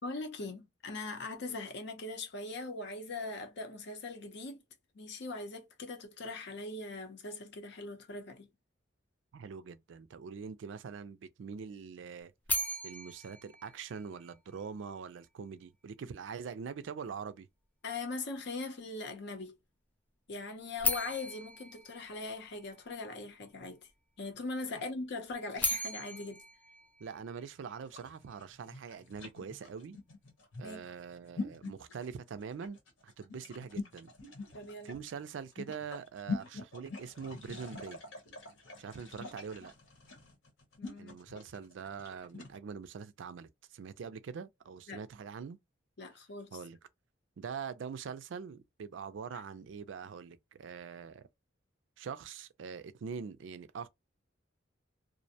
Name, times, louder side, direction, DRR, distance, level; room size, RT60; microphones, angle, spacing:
voice 1, 0.0-4.6 4.9-8.5 17.8-19.6 20.3-23.9 24.2-26.4 30.6-30.9 34.5-35.0 40.8-41.2 44.9-45.0 46.0-46.6 49.3-49.4, left 3 dB, 60° left, 0.6 m, -41 dB
voice 2, 9.3-12.3 12.8-17.5 24.8-24.9 27.0-30.0 30.6-32.8 33.0-34.1 34.8-38.0 38.8-39.7 41.0-45.6 46.5-46.8 47.4-51.3 52.0-53.9, right 6 dB, 70° right, 0.4 m, -43 dB
sound 1, 12.4-14.6 20.8-23.0 25.3-27.7, left 2 dB, 10° left, 0.3 m, -37 dB
sound 2, 27.8-42.6, left 3 dB, 80° left, 1.0 m, -44 dB
2.5 x 2.1 x 2.7 m
head